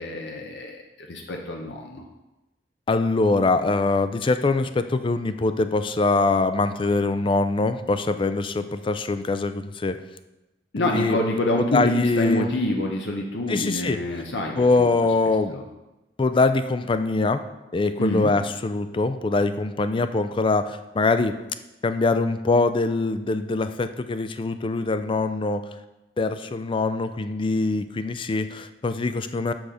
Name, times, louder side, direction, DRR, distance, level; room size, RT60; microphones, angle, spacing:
voice 1, 0.0-2.1 10.7-14.9 15.5-15.7 18.0-18.3, left 1 dB, 80° left, 1 dB, 0.8 m, -27 dB
voice 2, 2.9-10.0 10.8-11.2 11.6-12.5 13.5-14.0 14.6-15.6 16.2-17.4 17.7-21.3 21.8-25.6 26.2-29.5, left 3 dB, 30° left, 10 dB, 0.4 m, -23 dB
6.9 x 6.2 x 5.0 m, 1.0 s
head